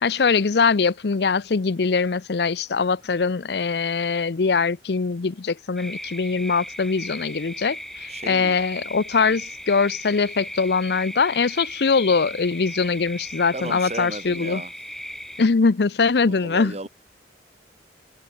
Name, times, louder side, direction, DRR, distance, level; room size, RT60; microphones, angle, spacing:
voice 1, 0.0-14.6 15.4-16.7, left 4 dB, 65° left, 0.6 m, -22 dB
sound 1, 5.8-15.5, equal, ahead, 3.8 m, -37 dB
voice 2, 8.1-8.6 13.5-14.7 16.2-16.9, right 2 dB, 40° right, 1.8 m, -35 dB
open air
head